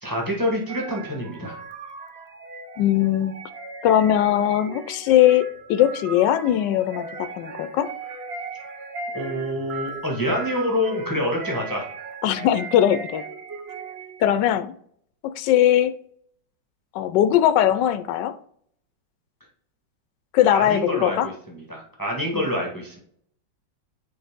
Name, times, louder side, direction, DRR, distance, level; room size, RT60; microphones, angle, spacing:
voice 1, 0.0-1.6 9.1-11.8 20.5-23.0, left 1 dB, 10° left, 1.3 m, -27 dB
sound 1, 0.7-14.3, right 4 dB, 50° right, 0.8 m, -37 dB
voice 2, 2.8-3.4 3.8-7.9 12.2-13.2 14.2-14.7 15.2-15.9 16.9-18.3 20.3-21.3 22.3-22.4, left 11 dB, 75° left, 1.2 m, -20 dB
9.9 x 4.1 x 3.6 m
omnidirectional pair, 2.0 m